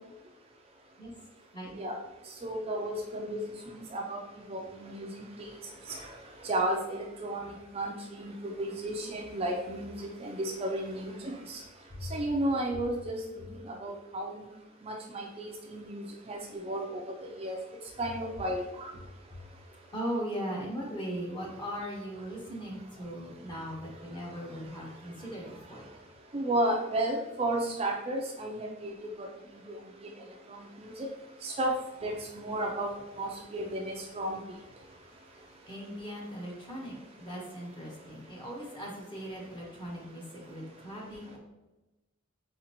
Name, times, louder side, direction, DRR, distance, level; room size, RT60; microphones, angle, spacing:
voice 1, 2.4-3.4 3.9-4.2 4.5-5.1 5.9-6.0 6.4-11.6 12.1-13.2 13.8-14.3 14.8-15.5 15.7-16.4 16.6-17.0 17.4-17.6 18.0-18.9 26.3-29.1 29.7-29.8 31.4-31.8 32.0-34.4, right 1 dB, 30° right, 1 dB, 0.4 m, -33 dB
voice 2, 19.9-25.9 34.8-35.3 35.6-41.4, equal, 25° left, -2 dB, 1.0 m, -39 dB
4.1 x 3.9 x 2.9 m, 1.0 s
head